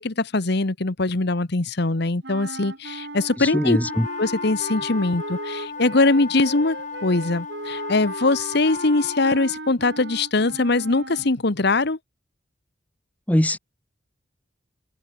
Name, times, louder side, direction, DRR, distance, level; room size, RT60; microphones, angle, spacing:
voice 1, 0.0-3.8 4.2-12.0, left 2 dB, 60° left, 1.3 m, -22 dB
sound 1, 2.2-11.4, right 2 dB, 65° right, 2.5 m, -37 dB
voice 2, 3.4-4.1 13.3-13.6, equal, 10° left, 0.9 m, -21 dB
sound 2, 3.8-9.3, left 4 dB, 45° left, 2.1 m, -34 dB
head